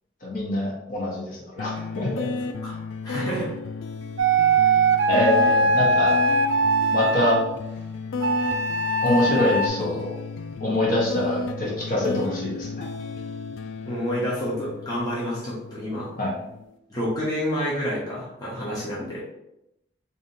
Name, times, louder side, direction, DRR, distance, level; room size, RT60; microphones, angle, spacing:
voice 1, 0.2-2.3 5.1-6.2 6.9-7.4 9.0-10.2 10.6-12.8 16.2-16.3, left 1 dB, 45° left, -4 dB, 1.1 m, -24 dB
sound 1, 1.6-16.7, left 4 dB, 85° left, 0.3 m, -33 dB
voice 2, 3.0-3.5 4.6-4.7 13.9-16.1 16.9-19.2, equal, 20° left, -7 dB, 0.9 m, -29 dB
sound 2, 4.2-7.4 8.2-9.7, right 2 dB, 70° right, 0.3 m, -21 dB
4.8 x 2.6 x 2.7 m, 0.85 s
head